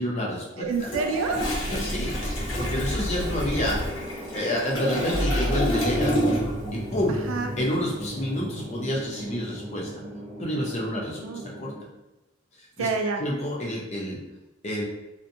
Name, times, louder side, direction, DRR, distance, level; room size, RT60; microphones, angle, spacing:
voice 1, 0.0-0.9 1.7-2.1 2.6-3.9 4.3-6.3 6.7-7.2 7.6-9.9 10.4-11.2 11.6-11.7 12.6-12.9 13.2-14.2 14.6-14.8, equal, 35° left, -3 dB, 0.6 m, -28 dB
voice 2, 0.6-1.4 2.9-3.1 7.1-7.5 11.2-11.4 12.8-13.2, right 4 dB, 90° right, 4 dB, 0.4 m, -28 dB
Toilet flush, 0.7-6.7 7.0-7.2, equal, 75° left, 0.8 m, -30 dB
sound 1, 1.4-11.8, equal, 30° right, 0.5 m, -32 dB
2.7 x 2.1 x 2.5 m, 1.0 s
head